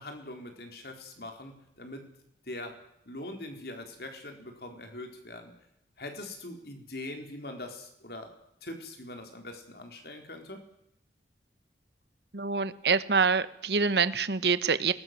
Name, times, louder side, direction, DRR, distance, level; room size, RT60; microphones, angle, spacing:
voice 1, 0.0-2.1 2.5-2.8 3.1-5.5 6.0-8.3 8.6-10.6, left 1 dB, 60° left, 5 dB, 4.1 m, -42 dB
voice 2, 12.3-14.9, right 5 dB, 65° right, 14 dB, 1.2 m, -26 dB
21.5 x 19.5 x 7.7 m, 0.81 s
head